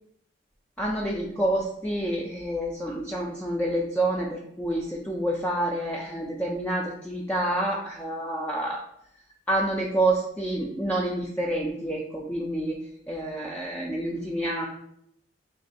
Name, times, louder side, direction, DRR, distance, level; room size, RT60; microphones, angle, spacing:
voice 1, 0.8-8.8 9.5-12.8 13.1-14.7, right 1 dB, 5° left, -3 dB, 0.3 m, -28 dB
3.1 x 2.6 x 3.9 m, 0.73 s
head